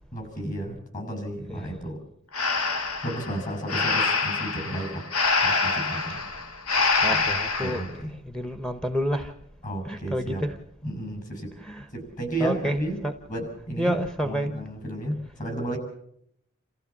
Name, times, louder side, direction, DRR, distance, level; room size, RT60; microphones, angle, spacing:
voice 1, 0.1-2.0 3.0-5.1 5.4-6.2 7.1-7.2 7.6-8.1 9.6-10.4 10.8-11.5 11.9-13.0 13.3-14.0 14.2-15.8, right 1 dB, 35° left, 7.1 m, -32 dB
voice 2, 1.5-1.8 3.7-3.9 6.4-6.5 7.0-9.4 9.8-10.6 11.5-11.9 12.4-13.1 13.8-14.5 15.2-15.4, equal, 5° left, 1.0 m, -30 dB
Breathing, 2.3-7.9, left 4 dB, 70° left, 2.0 m, -25 dB
28.5 x 15.0 x 7.3 m
head